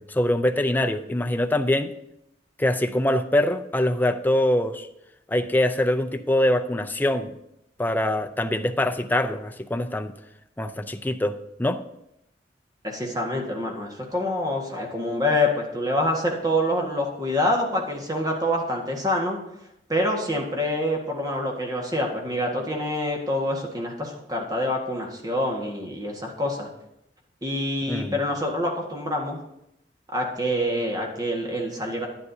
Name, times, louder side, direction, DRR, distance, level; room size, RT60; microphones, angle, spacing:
voice 1, 0.0-1.9 2.6-4.9 5.3-7.3 7.8-10.1 10.6-11.8 27.9-28.2, left 1 dB, 10° left, 7 dB, 0.5 m, -24 dB
voice 2, 12.8-19.4 19.9-26.7 27.4-29.4 30.1-32.1, left 1 dB, 20° right, 0 dB, 1.6 m, -26 dB
11.0 x 10.5 x 2.8 m, 0.80 s
head